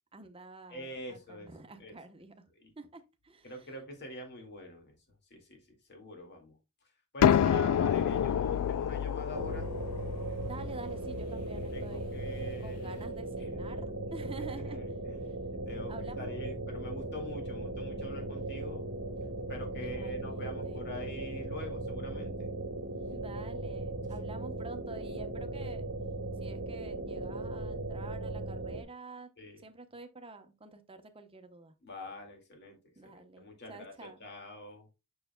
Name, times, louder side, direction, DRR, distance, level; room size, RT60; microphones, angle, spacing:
voice 1, 0.1-2.3 2.8-3.8 7.2-7.9 10.4-12.2 12.6-14.9 15.9-16.4 19.8-21.2 23.0-25.8 26.4-31.7 33.0-34.3, right 3 dB, 25° right, 0.9 m, -49 dB
voice 2, 0.7-1.5 1.8-2.0 2.6-2.7 3.4-4.9 5.3-5.6 5.9-6.5 7.1-9.7 11.7-13.1 13.4-13.8 14.4-14.9 15.5-18.8 19.5-22.5 29.4-29.6 31.8-32.8 33.0-34.9, left 1 dB, 50° left, 2.2 m, -44 dB
sound 1, 7.2-12.8, left 9 dB, 85° left, 0.3 m, -29 dB
sound 2, 9.3-28.8, right 2 dB, 80° right, 1.2 m, -38 dB
6.8 x 6.6 x 2.2 m
head